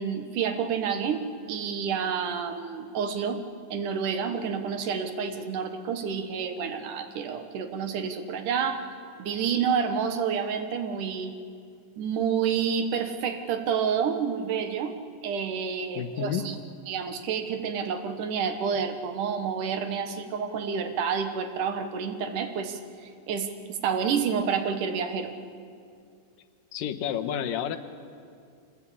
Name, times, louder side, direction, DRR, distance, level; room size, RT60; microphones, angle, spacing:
voice 1, 0.0-3.4 3.7-8.8 9.2-11.3 12.0-15.0 15.2-16.6 16.9-25.3, right 6 dB, 70° right, 8 dB, 2.8 m, -29 dB
voice 2, 16.0-16.4 26.7-27.8, left 9 dB, 85° left, 9 dB, 2.8 m, -30 dB
25.5 x 19.5 x 8.6 m, 2.3 s
omnidirectional pair, 3.8 m